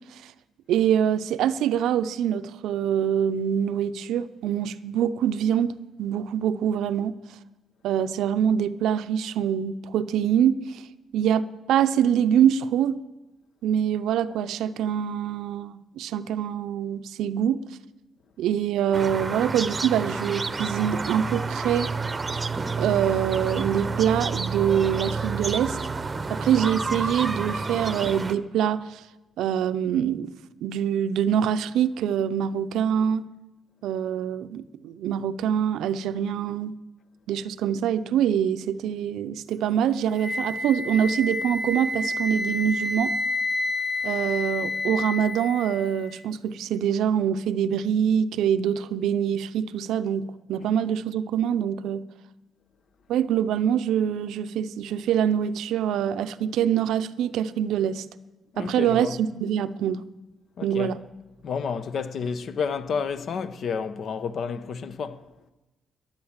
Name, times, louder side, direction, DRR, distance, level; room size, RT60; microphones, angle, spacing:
voice 1, 0.7-7.2 7.8-10.8 11.1-13.0 13.6-17.6 18.4-21.9 22.8-25.8 26.3-29.0 29.4-30.3 30.6-33.2 33.8-36.8 37.3-43.1 44.0-52.0 53.1-58.0 58.6-60.0 60.6-61.0, right 9 dB, 85° right, 0.5 m, -25 dB
sound 1, 18.9-28.3, right 4 dB, 25° right, 0.8 m, -29 dB
Wind instrument woodwind instrument, 40.2-46.2, left 2 dB, 10° left, 0.7 m, -29 dB
voice 2, 58.5-59.2 60.6-61.0 61.4-65.2, left 6 dB, 60° left, 0.8 m, -30 dB
13.5 x 10.5 x 7.3 m
cardioid pair, 90°, 0 cm